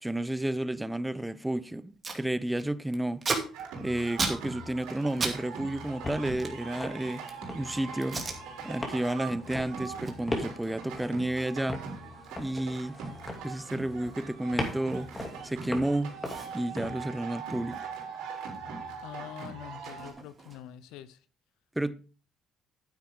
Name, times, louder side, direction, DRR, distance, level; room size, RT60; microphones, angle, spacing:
voice 1, 0.0-3.2 3.8-7.2 7.5-8.2 8.6-11.8 12.4-13.0 13.4-15.1 15.4-16.2 16.5-17.8 21.8-21.9, right 1 dB, 10° right, 0.6 m, -31 dB
Packing tape duct tape, 1.5-1.6 1.8-2.2 2.5-5.4 5.6-7.5 8.0-8.4 8.8-9.1 9.4-15.6 15.9-16.0 16.2-18.6 18.9-20.9, right 4 dB, 30° right, 2.3 m, -38 dB
sound 1, 3.5-20.1, right 4 dB, 90° right, 3.6 m, -42 dB
sound 2, 5.3-16.9, left 2 dB, 20° left, 2.6 m, -41 dB
voice 2, 19.0-21.2, left 12 dB, 85° left, 0.7 m, -45 dB
9.4 x 9.0 x 3.8 m
cardioid pair, 90°, 0 cm